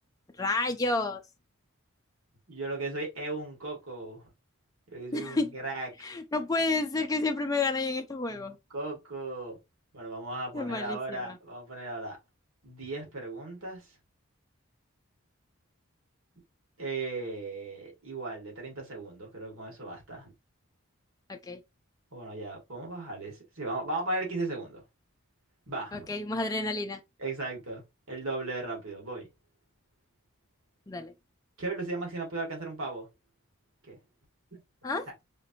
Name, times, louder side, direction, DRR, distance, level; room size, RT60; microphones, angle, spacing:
voice 1, 0.4-1.2 5.1-5.5 6.0-8.6 10.5-11.4 21.3-21.6 25.9-27.0 30.9-31.1 34.8-35.1, left 3 dB, 15° left, 0.4 m, -30 dB
voice 2, 2.5-4.3 4.9-5.9 8.3-9.6 9.9-12.2 12.6-13.9 16.8-20.3 22.1-24.8 25.7-26.0 27.2-29.3 31.6-33.1 33.8-34.0 34.5-34.6, right 2 dB, 75° right, 2.2 m, -36 dB
4.9 x 2.9 x 2.6 m
head